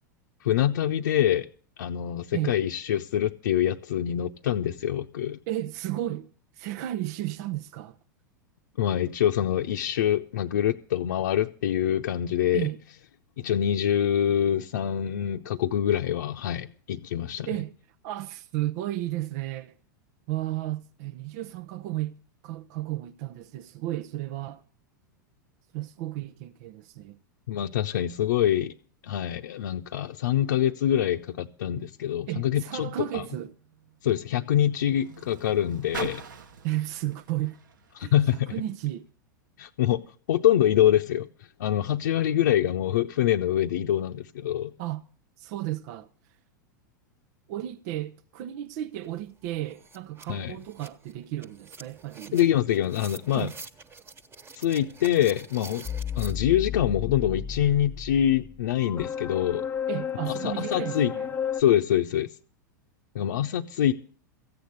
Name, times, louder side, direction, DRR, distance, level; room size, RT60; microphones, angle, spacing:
voice 1, 0.4-1.5 1.8-5.4 8.8-12.7 13.4-17.5 27.5-28.7 29.0-33.2 34.0-36.2 38.0-38.5 39.6-40.0 40.3-41.3 41.6-44.7 50.3-50.6 52.3-53.5 54.6-55.9 56.2-59.7 60.3-61.1 61.5-62.3 63.1-63.9, left 11 dB, 70° left, 0.8 m, -25 dB
voice 2, 5.5-8.0 12.5-12.8 17.5-17.7 18.0-19.7 20.3-24.6 25.7-27.2 32.3-33.5 36.6-37.6 38.0-39.1 44.8-45.0 45.4-46.4 47.5-52.4 53.3-53.5 59.9-61.3, right 14 dB, 55° right, 0.7 m, -33 dB
Car, 32.4-38.9 39.7-39.8, right 7 dB, 75° right, 1.2 m, -44 dB
sound 1, 49.0-49.1 49.4-56.3, right 4 dB, 20° right, 1.3 m, -47 dB
sound 2, 55.8-61.6, left 8 dB, 15° left, 0.7 m, -33 dB
14.5 x 8.9 x 8.1 m
hypercardioid pair, 100°, 10 cm